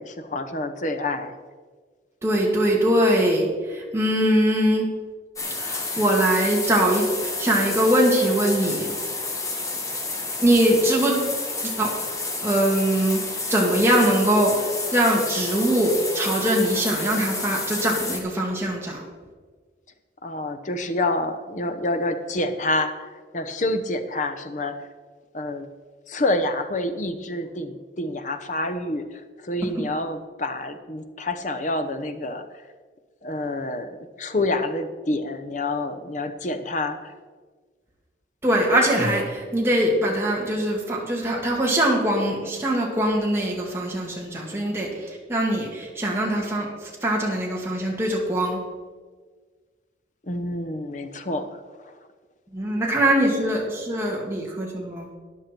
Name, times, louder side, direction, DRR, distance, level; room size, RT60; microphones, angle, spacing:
voice 1, 0.0-1.4 20.2-24.8 25.3-25.7 26.1-32.4 33.2-37.1 50.2-51.9, left 2 dB, 45° left, 9 dB, 0.9 m, -28 dB
voice 2, 2.2-4.9 5.6-8.9 10.4-11.3 11.6-11.9 12.4-13.2 13.5-19.0 38.4-48.6 52.5-55.1, right 1 dB, 15° right, -2 dB, 2.2 m, -22 dB
sound 1, 5.4-18.2, left 3 dB, 20° left, 1.3 m, -30 dB
13.0 x 9.9 x 4.4 m, 1.5 s
head